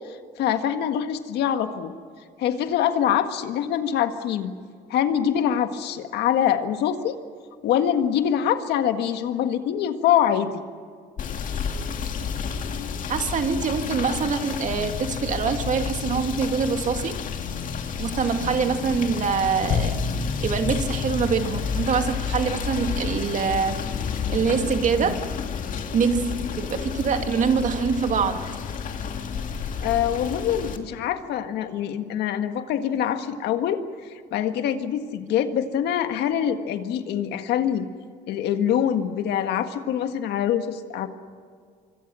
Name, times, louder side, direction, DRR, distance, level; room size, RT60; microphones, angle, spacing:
voice 1, 0.1-1.9 2.4-4.5 4.9-7.2 7.6-10.6 29.8-37.9 38.3-41.1, left 9 dB, 80° left, 8 dB, 1.7 m, -24 dB
Rain / Motor vehicle (road), 11.2-30.8, left 6 dB, 50° left, 2.3 m, -30 dB
voice 2, 13.1-17.2 18.0-19.9 20.4-23.8 24.3-25.2 25.9-28.4, right 6 dB, 45° right, 7 dB, 2.0 m, -24 dB
25.5 x 25.0 x 6.3 m, 2.1 s
cardioid pair, 110°, 17 cm